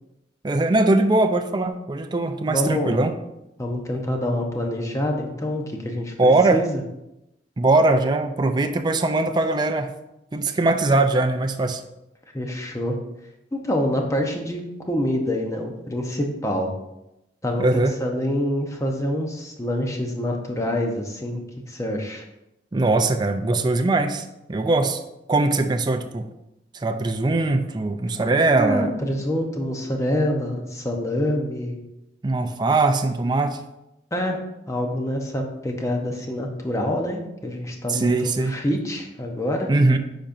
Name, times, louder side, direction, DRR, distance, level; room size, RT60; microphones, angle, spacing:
voice 1, 0.4-3.2 6.2-6.6 7.6-9.9 10.3-11.8 17.6-18.0 22.7-25.0 25.3-26.3 26.7-28.9 32.2-33.6 37.9-38.5 39.7-40.0, right 2 dB, 25° right, 6 dB, 0.4 m, -21 dB
voice 2, 2.5-3.0 3.6-6.8 12.3-13.0 13.5-16.7 17.4-21.4 21.7-22.2 28.6-31.8 34.1-34.4 34.7-39.7, left 1 dB, 20° left, 2 dB, 0.8 m, -26 dB
10.0 x 4.2 x 2.6 m, 0.90 s
head